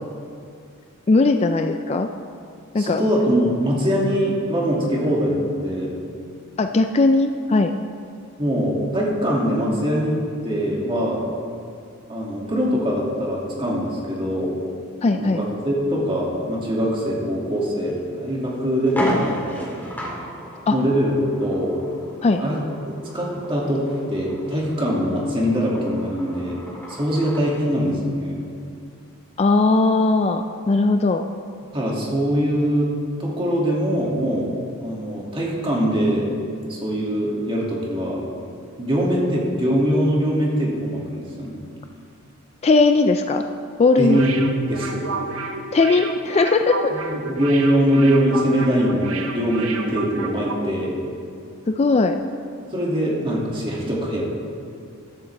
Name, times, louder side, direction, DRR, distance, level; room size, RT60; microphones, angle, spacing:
voice 1, 1.1-2.1 2.7-3.0 6.6-7.7 15.0-15.4 20.7-20.8 22.2-22.4 29.4-31.2 42.6-43.5 43.8-44.2 45.7-46.9 51.7-52.2, left 3 dB, 30° left, 6 dB, 0.4 m, -18 dB
voice 2, 2.8-6.0 8.4-10.1 10.4-11.3 12.1-14.5 15.1-19.7 20.7-21.1 21.4-21.8 22.4-22.6 23.1-26.6 26.9-28.4 31.7-32.9 33.2-34.5 34.8-36.3 36.7-38.2 38.8-41.6 44.0-44.3 44.7-45.1 47.1-51.0 52.7-54.2, equal, 25° right, -4 dB, 2.4 m, -22 dB
sound 1, 17.9-18.0 18.4-18.5 18.9-27.5, equal, 10° left, 2.1 m, -33 dB
sound 2, 44.1-50.7 51.0-51.1, right 3 dB, 85° right, 1.1 m, -31 dB
13.5 x 13.0 x 3.4 m, 2.3 s
head